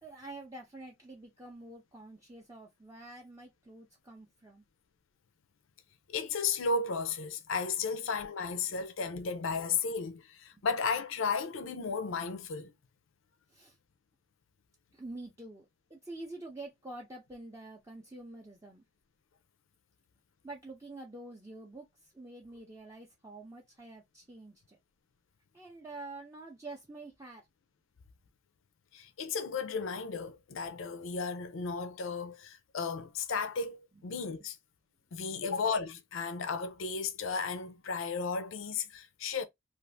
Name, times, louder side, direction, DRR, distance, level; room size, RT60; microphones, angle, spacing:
voice 1, 0.0-4.6 10.5-10.6 13.5-13.8 14.9-18.8 20.4-24.8 25.5-27.5 33.9-34.1, right 2 dB, 15° right, 0.5 m, -47 dB
voice 2, 6.1-12.7 28.9-34.6 35.1-39.4, left 5 dB, 80° left, 0.5 m, -34 dB
2.6 x 2.4 x 3.3 m
head